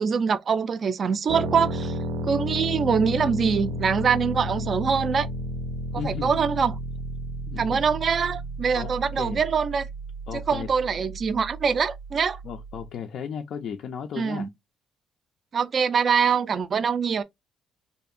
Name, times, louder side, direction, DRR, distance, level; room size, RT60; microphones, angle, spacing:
voice 1, 0.0-1.9 2.2-5.3 6.0-6.8 7.6-9.8 10.3-12.4 14.2-14.5 15.5-17.2, right 6 dB, 35° right, 0.3 m, -24 dB
sound 1, 1.3-12.9, equal, 90° right, 0.6 m, -33 dB
voice 2, 6.0-6.4 7.5-7.8 8.7-9.4 10.3-10.7 12.4-14.5, left 7 dB, 55° left, 0.3 m, -35 dB
2.7 x 2.5 x 2.3 m
cardioid pair, 155°, 0 cm